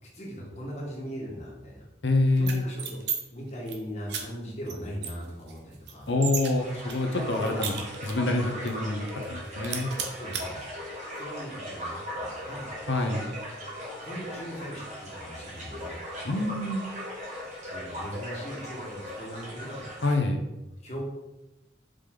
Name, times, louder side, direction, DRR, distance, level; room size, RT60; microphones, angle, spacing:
voice 1, 0.0-1.9 2.3-6.1 9.7-9.8 10.2-10.6 11.1-12.7 14.0-16.0 17.6-19.8 20.8-21.0, equal, 40° left, -3 dB, 1.5 m, -39 dB
voice 2, 2.0-2.6 6.1-9.9 12.9-13.3 16.2-16.9 20.0-20.4, left 2 dB, 90° left, 5 dB, 0.8 m, -26 dB
sound 1, 2.4-3.2 3.5-3.8 4.1-4.2 4.7-4.8 5.0-6.5 6.9-8.3 8.7-8.8 9.1-9.4 9.6-10.4, right 7 dB, 75° right, 0.9 m, -34 dB
sound 2, 6.6-20.1, equal, 40° right, 1.8 m, -38 dB
5.1 x 5.0 x 3.8 m, 1.0 s
head